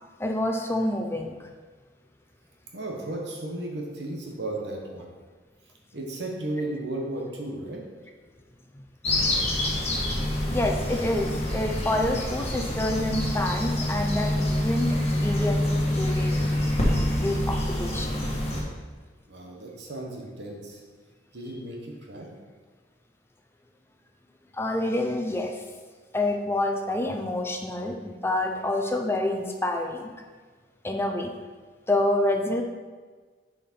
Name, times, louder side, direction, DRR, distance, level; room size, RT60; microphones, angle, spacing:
voice 1, 0.2-1.5 8.7-8.8 10.5-16.5 17.2-18.2 24.5-25.6 26.1-30.1 30.8-31.3 31.9-32.6, left 1 dB, 15° left, 3 dB, 0.6 m, -27 dB
voice 2, 2.7-5.1 5.9-7.8 19.3-20.8 21.3-22.3, right 1 dB, 70° right, 0 dB, 1.3 m, -34 dB
sound 1, 9.0-18.6, left 1 dB, 35° left, 1.5 m, -26 dB
6.7 x 5.0 x 4.4 m, 1.4 s
head